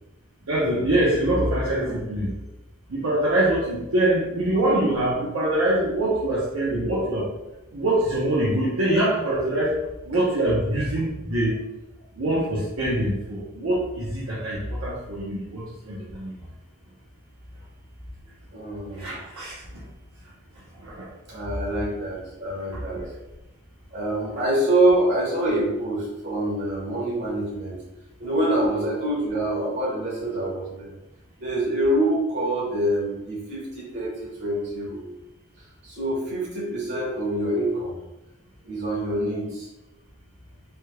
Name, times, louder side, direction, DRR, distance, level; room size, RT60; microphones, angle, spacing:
voice 1, 0.5-2.3 2.9-7.3 7.7-9.8 10.0-11.6 12.1-16.3 19.0-19.8 20.8-21.1 22.7-23.1, right 1 dB, 80° right, -8 dB, 0.8 m, -24 dB
voice 2, 18.5-19.1 21.3-23.0 23.9-27.8 28.2-30.9 31.4-35.1 35.8-37.9 38.6-39.7, right 1 dB, 55° right, -5 dB, 1.4 m, -25 dB
3.4 x 2.9 x 2.3 m, 0.99 s
head